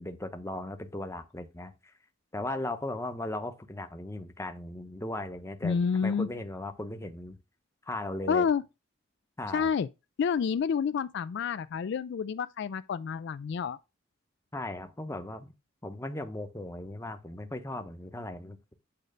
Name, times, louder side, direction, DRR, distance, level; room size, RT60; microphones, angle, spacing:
voice 1, 0.0-1.9 2.3-7.4 7.9-8.5 9.4-9.7 14.5-15.5 15.8-18.7, left 1 dB, 15° left, 0.8 m, -37 dB
voice 2, 5.6-6.3 8.3-8.6 9.5-9.9 10.2-13.8, left 6 dB, 55° left, 0.3 m, -29 dB
8.7 x 3.2 x 6.5 m
head